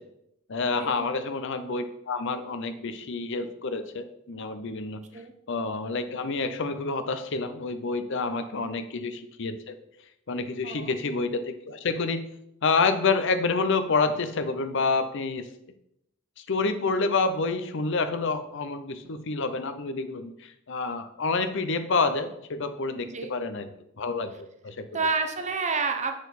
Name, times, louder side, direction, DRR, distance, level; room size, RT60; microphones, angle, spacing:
voice 1, 0.5-5.0 5.5-9.7 10.3-12.2 12.6-15.4 16.4-23.7 24.0-24.8, left 4 dB, 65° left, 10 dB, 0.7 m, -28 dB
voice 2, 8.4-8.7 10.6-10.9 23.1-23.3 24.9-26.2, right 4 dB, 35° right, 6 dB, 0.9 m, -29 dB
7.1 x 6.3 x 4.2 m, 0.78 s
head